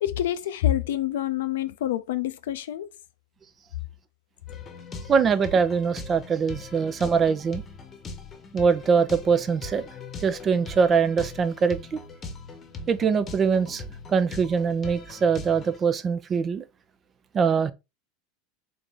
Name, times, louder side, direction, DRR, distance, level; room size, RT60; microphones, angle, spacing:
voice 1, 0.0-2.9, left 12 dB, 75° left, 0.4 m, -27 dB
sound 1, 4.5-15.8, left 3 dB, 35° left, 0.9 m, -40 dB
voice 2, 5.1-7.6 8.5-9.8 10.2-12.0 12.9-13.8 14.1-16.6 17.3-17.7, right 6 dB, 30° right, 0.6 m, -23 dB
3.9 x 2.8 x 3.7 m
hypercardioid pair, 90°, 0 cm